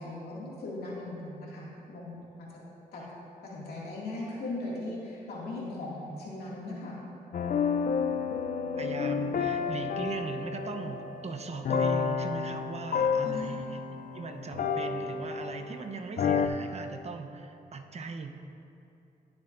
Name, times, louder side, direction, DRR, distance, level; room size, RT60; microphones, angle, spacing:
voice 1, 0.0-2.2 2.9-3.0 3.4-6.9 13.2-13.8, left 2 dB, 85° left, -5 dB, 2.3 m, -38 dB
sound 1, 7.3-15.8 16.2-16.5, left 6 dB, 60° left, 0.6 m, -30 dB
voice 2, 8.8-13.8 14.1-18.4, right 4 dB, 45° right, 5 dB, 0.9 m, -39 dB
16.5 x 7.2 x 2.6 m, 2.7 s
cardioid pair, 65°, 16 cm